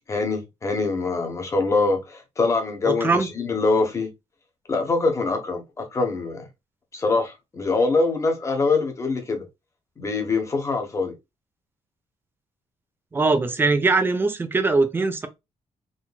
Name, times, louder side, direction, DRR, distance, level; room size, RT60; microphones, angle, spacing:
voice 1, 0.1-4.1 4.7-6.4 6.9-9.5 10.0-11.1, left 3 dB, 25° left, 1.0 m, -24 dB
voice 2, 2.9-3.3 13.1-15.3, right 3 dB, 15° right, 0.6 m, -21 dB
3.9 x 3.0 x 2.3 m
wide cardioid pair, 170°, 12 cm